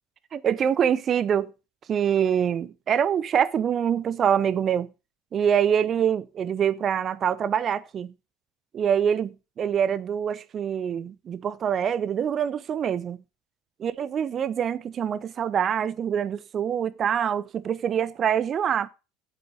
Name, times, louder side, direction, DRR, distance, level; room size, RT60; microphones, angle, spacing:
voice 1, 0.3-1.5 1.9-4.9 5.3-8.1 8.7-13.2 13.8-18.9, right 8 dB, 35° right, 0.7 m, -25 dB
8.0 x 7.2 x 6.4 m
figure-of-eight pair, 65°, 0 cm